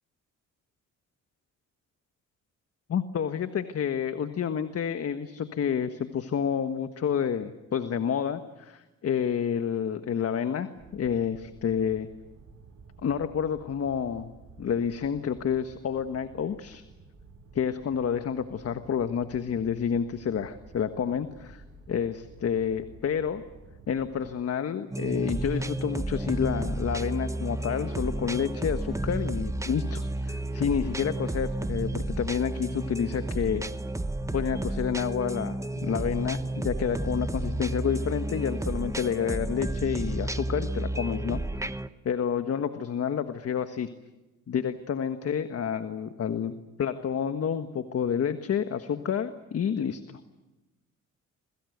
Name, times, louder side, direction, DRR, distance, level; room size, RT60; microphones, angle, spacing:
voice 1, 2.9-12.1 13.0-14.3 14.6-16.8 17.5-23.4 23.9-33.6 34.3-41.4 42.0-43.9 44.5-50.2, left 7 dB, 50° left, 9 dB, 1.5 m, -29 dB
sound 1, 10.8-24.3, right 3 dB, 55° right, 7.9 m, -52 dB
sound 2, 24.9-41.9, right 1 dB, 10° right, 1.1 m, -32 dB
28.0 x 22.0 x 8.1 m, 1.1 s
cardioid pair, 90°, 30 cm